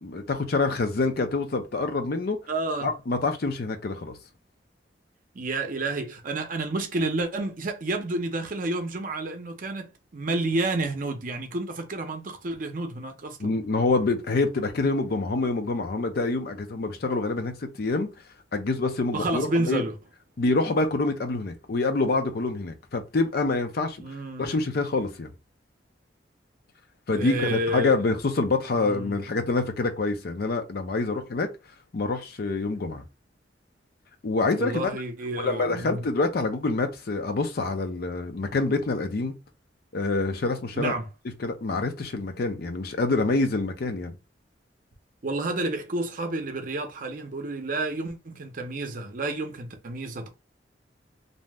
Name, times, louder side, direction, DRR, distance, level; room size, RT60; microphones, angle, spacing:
voice 1, 0.0-2.4 2.8-4.2 13.4-18.1 18.5-19.8 20.4-24.0 24.4-25.3 27.1-31.5 31.9-33.0 34.2-34.9 35.4-39.4 39.9-40.9 41.4-44.1, left 3 dB, 55° left, 0.5 m, -26 dB
voice 2, 2.5-2.9 5.3-13.5 19.1-19.9 24.0-24.5 27.1-27.9 28.7-29.2 34.6-36.0 40.7-41.1 45.2-50.3, right 2 dB, 50° right, 0.6 m, -30 dB
2.6 x 2.0 x 3.3 m
head